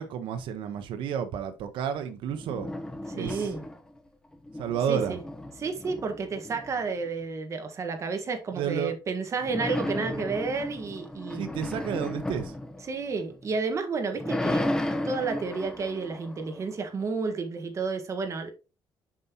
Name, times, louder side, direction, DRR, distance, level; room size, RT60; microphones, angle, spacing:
voice 1, 0.0-2.7 3.1-3.6 4.6-5.2 8.5-8.9 11.3-12.6, right 8 dB, 80° right, 0.9 m, -31 dB
sound 1, 2.3-4.0 4.3-7.1 9.4-13.5 13.9-17.0, left 1 dB, 10° left, 0.9 m, -34 dB
voice 2, 3.1-3.6 4.9-5.2 5.6-11.4 12.9-14.7 15.0-18.5, right 4 dB, 35° right, 1.5 m, -31 dB
7.5 x 5.5 x 2.9 m
cardioid pair, 140°, 9 cm